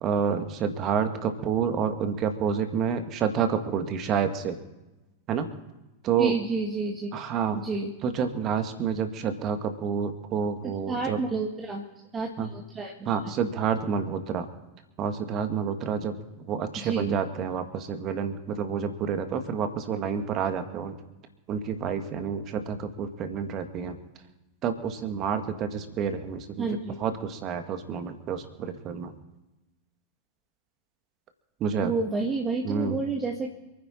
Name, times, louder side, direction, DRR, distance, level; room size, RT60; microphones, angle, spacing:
voice 1, 0.0-4.6 5.3-5.5 6.0-6.3 7.1-7.6 8.0-11.2 12.4-12.5 13.1-14.5 15.0-21.0 21.5-24.0 24.6-26.7 27.0-29.1 31.6-31.9 32.6-33.0, right 7 dB, 35° right, 7 dB, 2.0 m, -29 dB
voice 2, 6.2-7.1 7.6-7.9 10.9-11.8 12.1-13.1 16.8-17.2 26.6-27.0 31.8-33.5, right 3 dB, 20° right, 0 dB, 1.9 m, -30 dB
28.0 x 10.5 x 4.4 m, 1.0 s
figure-of-eight pair, 90°, 0 cm